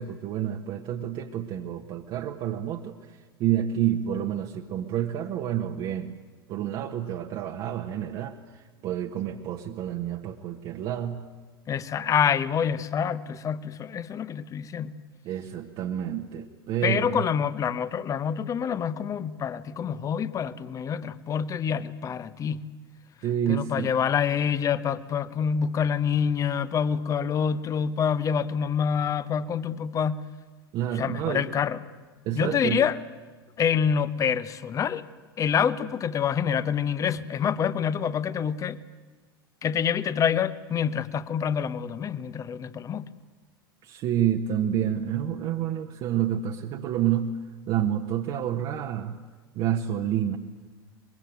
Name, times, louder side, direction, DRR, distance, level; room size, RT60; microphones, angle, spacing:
voice 1, 0.0-3.0 3.4-6.1 6.5-11.2 15.2-17.2 23.2-23.9 30.7-31.4 32.2-32.8 43.8-47.3 47.7-49.2 49.5-50.4, right 10 dB, 40° right, 1.4 m, -29 dB
voice 2, 11.7-15.0 16.8-22.6 23.5-30.2 30.9-31.8 32.3-33.0 33.6-35.0 35.4-38.8 39.6-43.1, left 7 dB, 25° left, 1.0 m, -26 dB
23.5 x 22.0 x 9.2 m
figure-of-eight pair, 80°, 13 cm